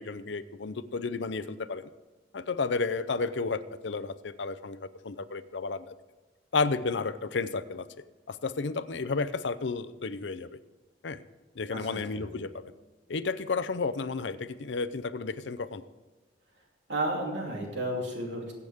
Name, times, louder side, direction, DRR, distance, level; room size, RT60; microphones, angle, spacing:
voice 1, 0.0-1.9 2.3-4.8 5.0-5.9 6.5-7.9 8.3-10.6 11.0-11.2 11.6-12.6 13.1-15.8, left 4 dB, 85° left, 12 dB, 0.6 m, -32 dB
voice 2, 11.7-12.3 16.9-18.5, right 1 dB, 85° right, -1 dB, 2.7 m, -33 dB
21.0 x 8.1 x 3.6 m, 1.2 s
head